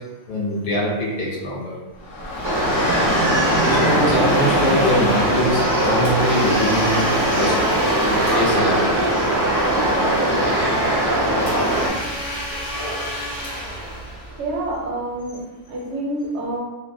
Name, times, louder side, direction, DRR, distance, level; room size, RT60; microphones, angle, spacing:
voice 1, 0.3-1.7 3.8-7.5 8.0-9.1, left 1 dB, 60° left, -6 dB, 0.9 m, -23 dB
Dog / Rain, 2.0-14.2, equal, 80° left, 1.0 m, -28 dB
Domestic sounds home sounds, 2.2-14.8, equal, 25° left, 0.7 m, -32 dB
sound 1, 2.4-11.9, right 1 dB, 30° right, 0.3 m, -20 dB
voice 2, 14.4-15.4 15.7-16.6, right 2 dB, 70° right, -3 dB, 0.8 m, -27 dB
2.5 x 2.0 x 2.6 m, 1.1 s
omnidirectional pair, 1.3 m